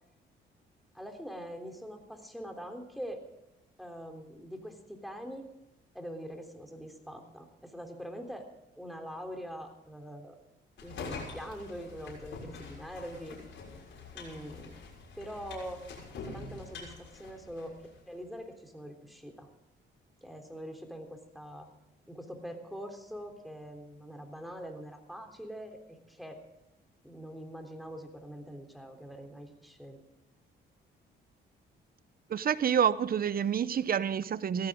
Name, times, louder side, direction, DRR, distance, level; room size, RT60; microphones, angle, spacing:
voice 1, 0.9-3.2 3.8-5.5 5.9-8.5 8.8-10.4 10.8-13.4 14.1-14.7 15.2-15.8 16.1-17.8 18.1-19.5 20.2-21.7 22.1-26.4 27.0-30.0, equal, ahead, 3.5 m, -43 dB
sound 1, 10.8-18.0, left 4 dB, 70° left, 6.4 m, -45 dB
voice 2, 32.3-34.7, right 8 dB, 50° right, 0.8 m, -28 dB
17.5 x 15.0 x 3.8 m
cardioid pair, 90°, 20 cm